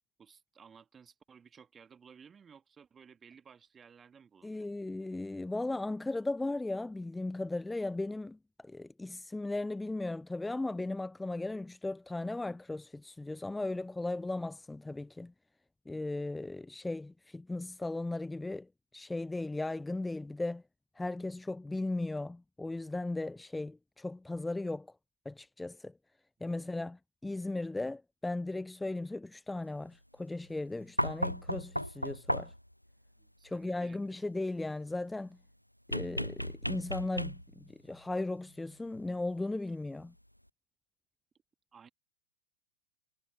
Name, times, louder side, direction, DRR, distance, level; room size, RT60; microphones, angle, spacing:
voice 1, 0.2-4.7 26.4-26.8 33.2-34.6 41.7-41.9, right 6 dB, 20° right, 1.9 m, -57 dB
voice 2, 4.4-15.3 15.9-20.6 21.0-24.9 25.3-25.9 26.4-32.5 33.4-35.4 35.9-40.1, left 2 dB, 5° left, 0.4 m, -37 dB
sound 1, 31.0-32.7 35.9-37.7 39.2-39.3, equal, 90° left, 0.4 m, -35 dB
figure-of-eight pair, 90°, 0 cm